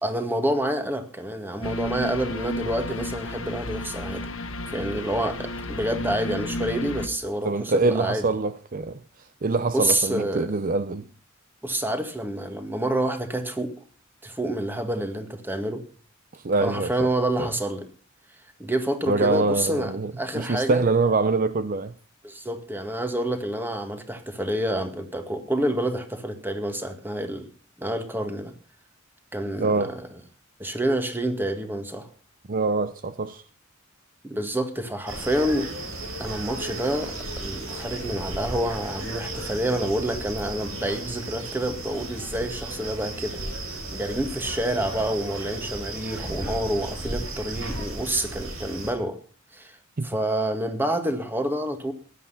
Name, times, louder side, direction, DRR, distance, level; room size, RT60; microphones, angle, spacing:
voice 1, 0.0-4.2 4.6-8.2 9.7-10.5 11.6-13.7 14.2-15.8 16.6-17.8 18.6-20.9 22.2-27.5 27.8-28.5 29.3-30.0 30.6-32.1 34.2-35.7 36.2-43.4 43.9-49.2 49.5-49.8 50.0-51.9, right 1 dB, 10° right, 2.0 m, -28 dB
sound 1, 1.6-7.1, left 1 dB, 70° left, 1.5 m, -32 dB
voice 2, 7.4-9.0 9.4-11.1 16.3-17.1 17.4-17.5 19.1-21.9 29.6-29.9 32.5-33.4 50.0-50.1, right 3 dB, 40° right, 0.6 m, -24 dB
sound 2, 35.1-48.9, right 2 dB, 80° right, 7.5 m, -35 dB
16.5 x 11.5 x 5.7 m
head